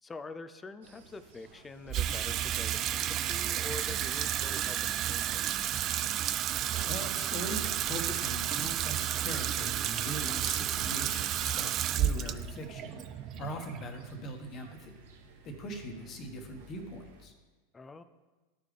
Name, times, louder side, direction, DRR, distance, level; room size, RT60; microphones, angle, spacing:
voice 1, 0.0-5.6 17.7-18.0, left 3 dB, 20° left, 12 dB, 0.5 m, -45 dB
sound 1, 0.8-17.2, right 3 dB, 70° right, 1.2 m, -54 dB
Water tap faucet / Sink (filling or washing), 1.9-14.3, right 11 dB, 40° right, 0.3 m, -32 dB
voice 2, 6.9-13.0 13.4-14.9 15.4-17.3, equal, 40° left, 4 dB, 1.4 m, -41 dB
14.0 x 4.9 x 3.3 m, 1.2 s
figure-of-eight pair, 85°, 0 cm